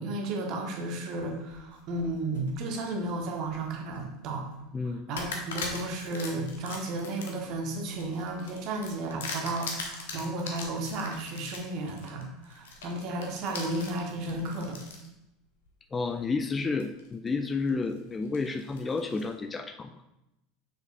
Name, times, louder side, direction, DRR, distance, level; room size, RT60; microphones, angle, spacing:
voice 1, 0.0-4.5 4.8-14.8, right 2 dB, 45° right, 2 dB, 1.2 m, -33 dB
sound 1, 1.3-2.5 3.1-4.0 4.5-4.6 5.2-15.1 15.7-15.8 16.8-17.3 17.7-19.3, left 4 dB, 65° left, 1.0 m, -41 dB
voice 2, 4.7-5.0 15.9-19.9, left 4 dB, 20° left, 8 dB, 0.4 m, -31 dB
6.9 x 6.3 x 2.3 m, 0.90 s
figure-of-eight pair, 75°, 0 cm